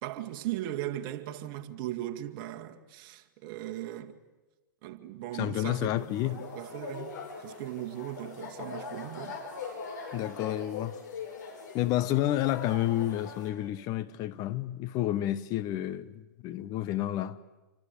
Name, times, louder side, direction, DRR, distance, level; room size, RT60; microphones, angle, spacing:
voice 1, 0.0-4.2 4.8-9.4, right 13 dB, 40° right, 2.1 m, -38 dB
voice 2, 5.3-6.4 10.1-11.0 11.7-17.4, left 13 dB, 35° left, 1.0 m, -30 dB
sound 1, 6.0-13.5, left 5 dB, 65° left, 6.6 m, -42 dB
27.5 x 24.0 x 8.5 m
hypercardioid pair, 115°, 11 cm